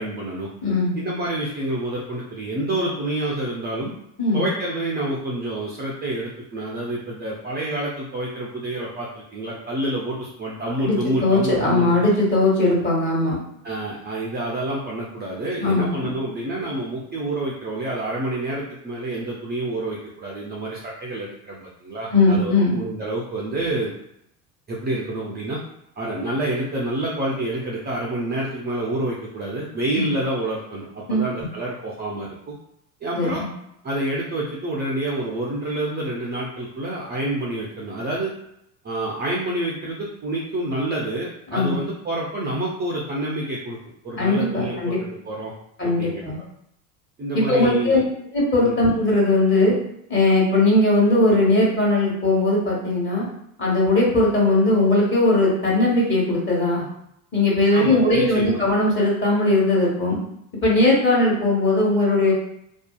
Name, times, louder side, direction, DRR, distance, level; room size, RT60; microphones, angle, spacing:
voice 1, 0.0-0.5 1.0-3.9 4.3-12.0 13.6-23.9 24.7-25.6 26.0-32.5 33.0-33.5 33.8-38.3 38.8-43.8 44.0-45.5 45.8-46.2 47.2-48.0 48.6-48.8 57.7-58.6, right 1 dB, 25° right, -4 dB, 0.5 m, -28 dB
voice 2, 0.6-0.9 4.2-4.4 10.8-11.0 11.2-13.4 15.6-16.1 22.1-22.7 29.9-30.1 31.1-31.3 33.1-33.5 41.5-41.8 44.2-45.0 45.8-46.4 47.3-48.0 48.3-49.8 50.1-53.3 53.6-56.8 57.3-60.2 60.6-62.3, left 2 dB, 25° left, -4 dB, 1.1 m, -19 dB
2.6 x 2.3 x 2.3 m, 0.76 s
hypercardioid pair, 85°, 44 cm